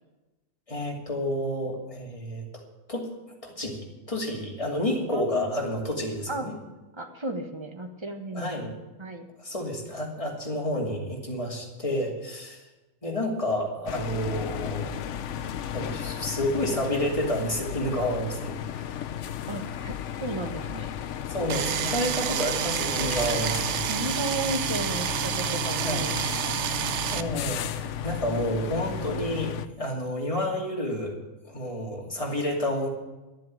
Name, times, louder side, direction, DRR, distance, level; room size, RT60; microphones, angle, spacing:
voice 1, 0.7-2.4 2.9-3.1 3.4-6.5 8.3-8.7 9.4-12.6 13.0-15.0 15.7-19.0 19.6-19.7 20.3-20.4 21.3-23.9 25.8-26.1 27.1-31.2 31.5-32.9, left 1 dB, 25° left, -1 dB, 2.7 m, -30 dB
voice 2, 5.1-5.5 6.3-6.4 6.9-8.5 9.0-9.3 19.5-19.9 20.2-20.9 23.4-23.6 23.8-26.2 26.6-27.2, right 2 dB, 20° right, 5 dB, 1.4 m, -34 dB
sound 1, 13.9-29.7, left 9 dB, 70° left, 1.0 m, -34 dB
sound 2, 21.5-27.2, right 10 dB, 65° right, 0.9 m, -29 dB
12.5 x 7.6 x 9.8 m, 1.1 s
omnidirectional pair, 1.4 m